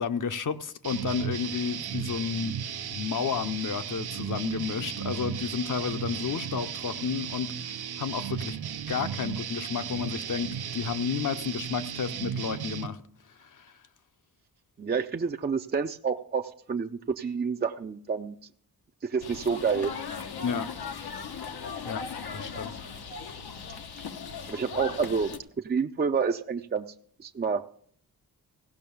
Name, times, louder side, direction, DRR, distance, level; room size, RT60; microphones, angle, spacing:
voice 1, 0.0-2.5 2.9-8.6 8.9-13.0 13.4-13.7 20.4-20.7 21.9-22.0 22.3-22.7, left 6 dB, 55° left, 0.7 m, -31 dB
sound 1, 0.8-12.9, right 8 dB, 90° right, 0.7 m, -35 dB
voice 2, 14.8-18.4 19.0-19.9 23.7-23.8 24.5-25.3 25.6-26.9 27.2-27.6, right 5 dB, 30° right, 0.4 m, -28 dB
sound 2, 19.2-25.4, left 6 dB, 90° left, 1.0 m, -38 dB
16.0 x 5.8 x 7.0 m
wide cardioid pair, 115°, 37 cm